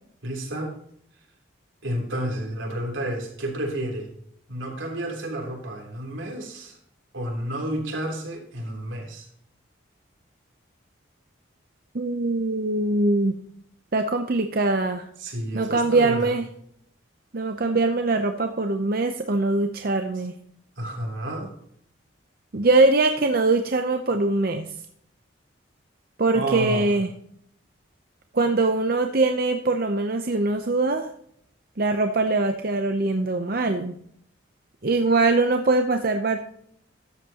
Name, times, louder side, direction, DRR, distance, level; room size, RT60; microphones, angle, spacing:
voice 1, 0.2-0.7 1.8-4.1 4.5-6.8 7.1-9.3 15.2-16.3 20.8-21.5 26.3-26.9, right 1 dB, 80° right, 0 dB, 3.4 m, -30 dB
voice 2, 11.9-13.4 13.9-15.1 15.5-16.5 17.3-20.4 22.5-24.7 26.2-27.1 28.3-31.1 31.8-34.0 34.8-36.4, right 3 dB, 50° right, 6 dB, 0.7 m, -22 dB
13.5 x 8.0 x 2.9 m, 0.68 s
head